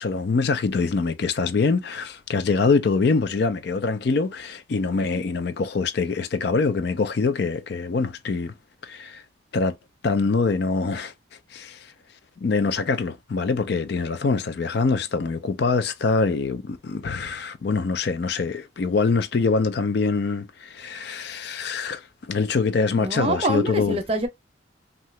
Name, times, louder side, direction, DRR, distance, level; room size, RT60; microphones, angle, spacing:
voice 1, 0.0-8.5 8.8-9.2 9.5-9.8 10.0-11.1 11.5-11.9 12.4-24.0, left 4 dB, 55° left, 0.4 m, -24 dB
voice 2, 23.0-24.3, right 1 dB, 30° right, 0.6 m, -25 dB
2.8 x 2.4 x 3.1 m
head